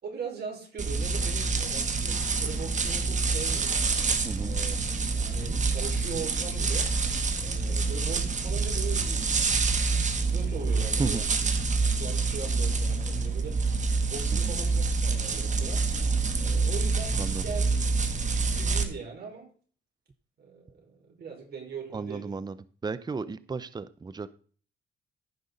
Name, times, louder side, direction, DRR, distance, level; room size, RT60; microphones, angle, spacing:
voice 1, 0.0-3.8 4.4-4.8 5.1-6.9 7.4-11.4 11.8-15.8 16.4-17.7 18.1-19.5 20.4-22.3, right 5 dB, 55° right, 0 dB, 5.1 m, -40 dB
sound 1, 0.8-18.8, right 4 dB, 35° right, 1.5 m, -27 dB
voice 2, 4.2-4.6 11.0-11.2 14.3-14.5 17.1-17.4 21.9-22.6 22.8-24.3, right 4 dB, 20° right, 15 dB, 0.6 m, -34 dB
15.0 x 5.6 x 4.0 m, 0.43 s
cardioid pair, 90°, 20 cm